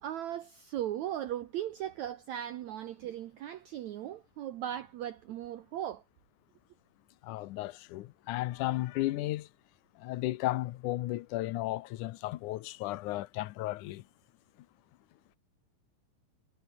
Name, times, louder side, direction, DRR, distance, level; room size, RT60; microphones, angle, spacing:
voice 1, 0.0-6.0, right 11 dB, 75° right, 1.8 m, -38 dB
voice 2, 7.2-9.5 10.0-14.0, left 16 dB, 75° left, 2.0 m, -34 dB
omnidirectional pair, 4.3 m